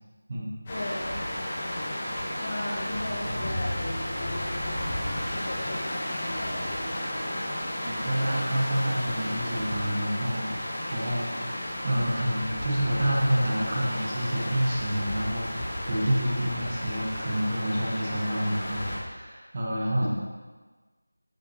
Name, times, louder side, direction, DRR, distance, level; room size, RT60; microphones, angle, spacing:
voice 1, 0.7-1.1 2.4-7.4, left 1 dB, 35° left, -3 dB, 1.5 m, -38 dB
sound 1, 0.7-19.0, left 1 dB, 20° left, 1.6 m, -33 dB
voice 2, 7.8-20.1, equal, 30° right, -4 dB, 1.5 m, -28 dB
13.0 x 7.1 x 2.9 m, 1.3 s
figure-of-eight pair, 175°, 0 cm